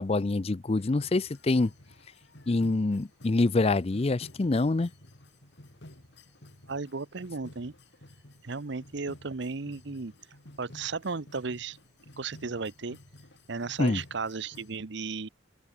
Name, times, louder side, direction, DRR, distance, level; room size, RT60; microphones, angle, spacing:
voice 1, 0.0-1.7 2.5-4.9 13.8-14.0, left 2 dB, 30° left, 0.5 m, -25 dB
sound 1, 0.8-14.8, left 1 dB, 60° left, 3.1 m, -53 dB
voice 2, 6.7-7.7 8.4-10.1 10.6-11.8 12.2-13.0 13.5-15.3, right 4 dB, 60° right, 0.8 m, -35 dB
open air
head